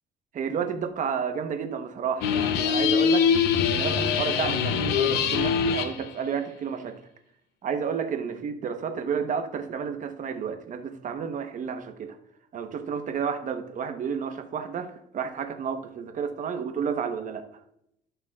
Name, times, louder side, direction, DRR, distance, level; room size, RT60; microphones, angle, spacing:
voice 1, 0.3-3.3 3.7-7.0 7.6-12.2 12.5-17.4, right 6 dB, 50° right, 7 dB, 1.0 m, -31 dB
sound 1, 2.2-6.0, left 7 dB, 80° left, 0.8 m, -23 dB
13.0 x 5.8 x 2.4 m, 0.75 s
cardioid pair, 110°, 17 cm